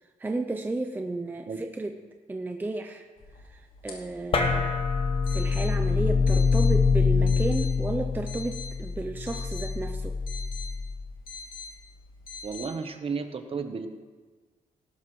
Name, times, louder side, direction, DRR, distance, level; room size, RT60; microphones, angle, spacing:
voice 1, 0.2-1.5 1.8-2.0 2.3-3.0 3.5-4.9 5.3-10.2, right 2 dB, 15° right, 5 dB, 0.5 m, -32 dB
sound 1, 3.2-12.7, left 4 dB, 80° left, 2.6 m, -45 dB
sound 2, 4.3-11.1, left 5 dB, 40° left, 1.1 m, -25 dB
voice 2, 12.4-13.9, right 5 dB, 40° right, 7 dB, 1.0 m, -33 dB
18.0 x 12.5 x 3.1 m, 1.4 s
wide cardioid pair, 160°, 15 cm